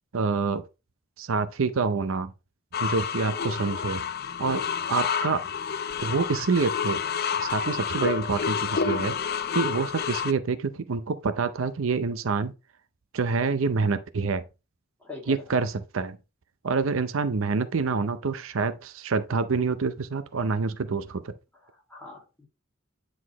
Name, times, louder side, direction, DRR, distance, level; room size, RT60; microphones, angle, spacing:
voice 1, 0.1-0.6 1.2-2.3 2.8-4.0 4.4-4.6 4.9-5.4 6.0-7.0 7.4-9.2 9.5-12.5 13.1-14.4 15.3-16.2 16.6-21.3, right 4 dB, 85° right, 0.6 m, -27 dB
sound 1, 2.7-10.3, left 7 dB, 50° left, 0.5 m, -29 dB
voice 2, 15.0-15.5 21.6-22.5, left 3 dB, 10° left, 2.5 m, -43 dB
9.4 x 4.2 x 3.0 m
head